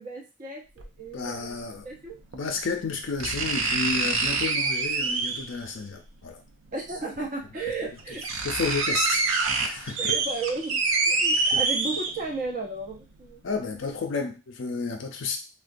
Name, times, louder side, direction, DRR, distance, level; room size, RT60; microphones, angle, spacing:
voice 1, 0.0-2.2 6.7-8.2 10.0-10.8 11.1-13.7, right 3 dB, 40° right, -1 dB, 0.7 m, -34 dB
sound 1, 0.8-0.9 2.3-2.4 3.2-5.6 6.9-7.0 7.7-7.8 8.0-12.4 12.9-13.0, right 4 dB, 90° right, 0.5 m, -26 dB
voice 2, 1.1-1.9 2.3-6.4 8.4-9.2 9.6-10.0 11.4-11.6 13.4-15.4, left 4 dB, 65° left, 4 dB, 0.5 m, -31 dB
3.6 x 2.1 x 2.5 m, 0.28 s
head